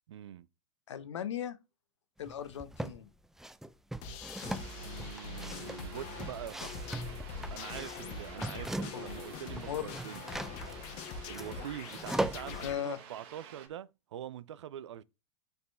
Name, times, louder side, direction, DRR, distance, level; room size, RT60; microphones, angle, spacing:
voice 1, 0.1-0.5 4.8-6.7 7.5-10.3 11.3-15.0, right 11 dB, 75° right, 0.5 m, -44 dB
voice 2, 0.9-1.6 2.2-3.1 8.9-9.9 12.6-13.0, left 10 dB, 75° left, 0.9 m, -38 dB
sound 1, 2.3-3.0 3.4-9.2 9.4-12.6, right 1 dB, 5° right, 0.4 m, -39 dB
sound 2, 4.0-12.8, left 5 dB, 50° left, 1.3 m, -43 dB
sound 3, 4.4-13.7, right 7 dB, 55° right, 1.4 m, -51 dB
6.6 x 4.3 x 3.3 m
hypercardioid pair, 95°, 15 cm